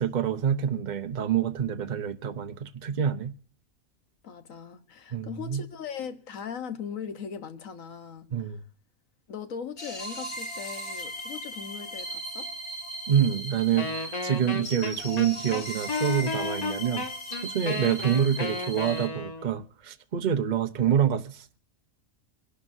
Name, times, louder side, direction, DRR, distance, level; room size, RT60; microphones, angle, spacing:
voice 1, 0.0-3.3 5.1-5.6 8.3-8.6 13.1-17.0 17.4-21.6, right 8 dB, 40° right, 0.8 m, -27 dB
voice 2, 4.2-8.6 9.3-12.5, left 7 dB, 80° left, 1.5 m, -39 dB
sound 1, 9.8-19.1, equal, 55° left, 2.9 m, -38 dB
Wind instrument woodwind instrument, 13.8-19.6, left 3 dB, 30° left, 1.4 m, -33 dB
26.5 x 11.5 x 2.7 m
omnidirectional pair, 1.4 m